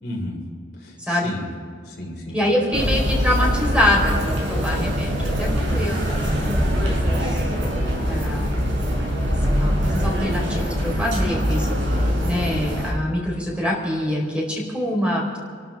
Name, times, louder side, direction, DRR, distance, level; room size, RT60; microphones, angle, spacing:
voice 1, 0.0-0.4 0.7-1.5 1.8-2.7, left 1 dB, 55° left, 0 dB, 3.2 m, -33 dB
voice 2, 2.3-7.5 8.1-8.6 9.3-15.4, left 1 dB, 5° right, -2 dB, 4.2 m, -25 dB
sound 1, 2.7-12.9, equal, 80° right, 5.1 m, -23 dB
29.0 x 12.5 x 3.6 m, 2.2 s
head